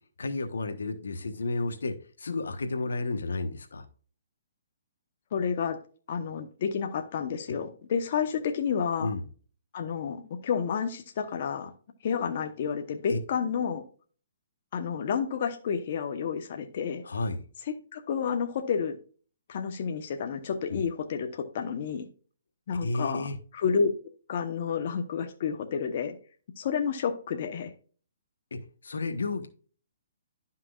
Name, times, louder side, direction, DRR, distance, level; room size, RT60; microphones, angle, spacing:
voice 1, 0.2-3.8 9.0-9.2 13.1-13.2 17.0-17.4 20.7-20.8 22.7-23.4 28.5-29.5, left 3 dB, 85° left, 1.1 m, -32 dB
voice 2, 5.3-5.8 6.1-9.1 9.7-11.7 12.0-13.8 14.7-17.0 17.9-19.0 19.5-22.1 22.7-23.3 23.5-23.9 24.3-26.1 26.6-27.7, left 6 dB, 50° left, 0.9 m, -30 dB
11.0 x 5.8 x 2.4 m
hypercardioid pair, 150°, 0 cm